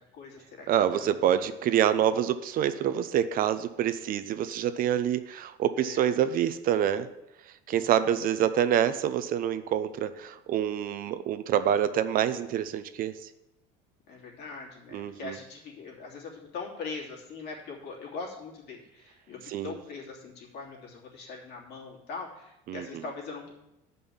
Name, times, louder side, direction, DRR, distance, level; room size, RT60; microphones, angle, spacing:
voice 1, 0.0-1.1 5.8-6.2 7.7-8.4 14.1-23.5, left 4 dB, 65° left, -3 dB, 3.1 m, -42 dB
voice 2, 0.7-7.1 7.7-13.1 14.9-15.4 19.5-19.8 22.7-22.8, right 10 dB, 50° right, 12 dB, 0.7 m, -26 dB
9.3 x 5.5 x 7.1 m, 0.88 s
supercardioid pair, 100°, 18 cm